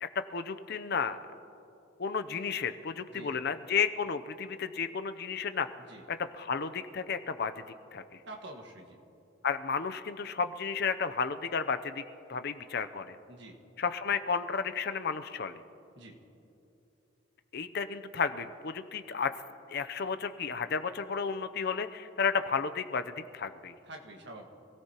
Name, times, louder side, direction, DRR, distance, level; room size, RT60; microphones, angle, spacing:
voice 1, 0.0-1.2 2.0-5.7 6.1-7.5 7.9-8.0 9.4-12.0 12.3-13.2 13.8-15.6 17.5-19.3 19.7-23.0 23.3-23.7, left 5 dB, 50° left, 10 dB, 0.6 m, -32 dB
voice 2, 3.1-3.4 5.8-6.0 8.3-9.0 13.3-13.6 15.9-16.2 23.8-24.5, right 2 dB, 55° right, 2 dB, 1.6 m, -47 dB
26.5 x 17.0 x 2.9 m, 2.8 s
head